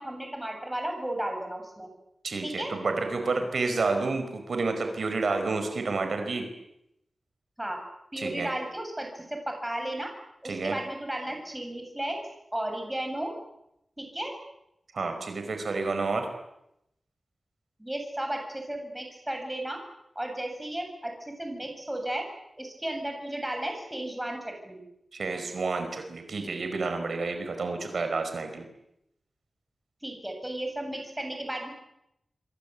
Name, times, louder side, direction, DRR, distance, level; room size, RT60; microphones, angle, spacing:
voice 1, 0.0-1.9 2.4-2.7 7.6-7.8 8.1-10.1 10.4-12.2 12.5-13.3 14.0-14.3 17.8-19.8 20.1-22.3 22.6-24.8 30.0-31.7, right 1 dB, 10° right, 3 dB, 7.9 m, -34 dB
voice 2, 2.2-6.4 8.2-8.5 10.4-10.7 14.9-16.3 25.1-28.6, right 3 dB, 65° right, 6 dB, 5.0 m, -30 dB
27.0 x 25.0 x 8.5 m, 0.82 s
wide cardioid pair, 125°, 0 cm